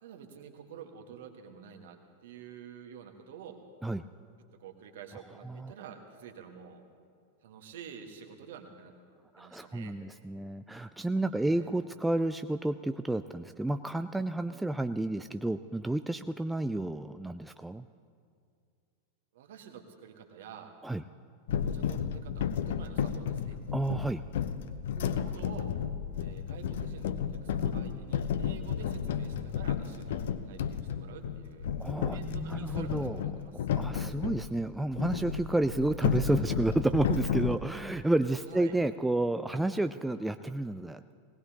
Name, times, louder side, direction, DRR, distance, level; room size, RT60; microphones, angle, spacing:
voice 1, 0.0-3.6 4.6-6.9 7.4-8.9 9.4-10.0 11.3-11.7 19.3-20.7 21.6-23.6 24.9-25.7 26.2-33.7 38.5-38.7, right 7 dB, 55° right, 5 dB, 1.5 m, -49 dB
voice 2, 9.3-17.9 20.8-21.0 23.7-24.2 31.8-33.2 33.7-41.2, right 2 dB, 5° right, 10 dB, 0.3 m, -31 dB
sound 1, 21.5-34.5 34.9-37.6, left 8 dB, 55° left, 0.6 m, -32 dB
19.5 x 18.0 x 2.9 m, 2.3 s
figure-of-eight pair, 90°, 0 cm